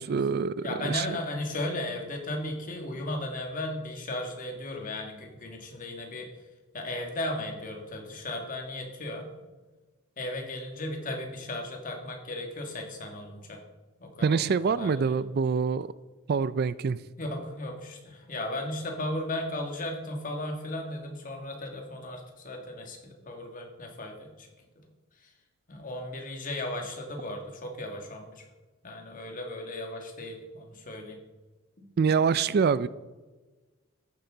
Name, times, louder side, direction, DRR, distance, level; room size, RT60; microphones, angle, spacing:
voice 1, 0.0-1.2 14.2-15.9 16.3-17.0 32.0-32.9, right 5 dB, 50° right, 17 dB, 0.4 m, -25 dB
voice 2, 0.6-6.3 6.7-9.3 10.2-13.6 14.0-15.2 17.2-24.5 25.2-25.3 25.7-28.5 28.8-31.2 31.8-31.9, left 1 dB, 40° left, 2 dB, 2.1 m, -36 dB
14.0 x 10.5 x 3.9 m, 1.2 s
head